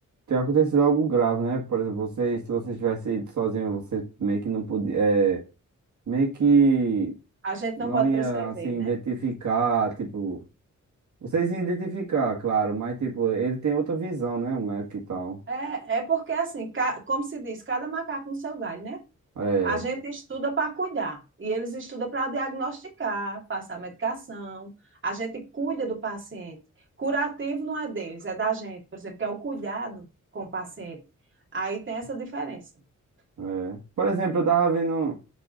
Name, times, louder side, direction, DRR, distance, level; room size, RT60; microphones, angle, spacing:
voice 1, 0.3-5.4 6.1-7.1 7.8-10.4 11.2-15.4 19.4-19.8 33.4-35.2, right 5 dB, 65° right, 1.8 m, -25 dB
voice 2, 7.4-8.9 15.5-19.0 19.6-24.7 25.0-26.6 27.0-30.0 30.3-31.0 31.5-32.6, right 4 dB, 40° right, 2.5 m, -30 dB
8.2 x 3.9 x 5.5 m
wide cardioid pair, 170°, 31 cm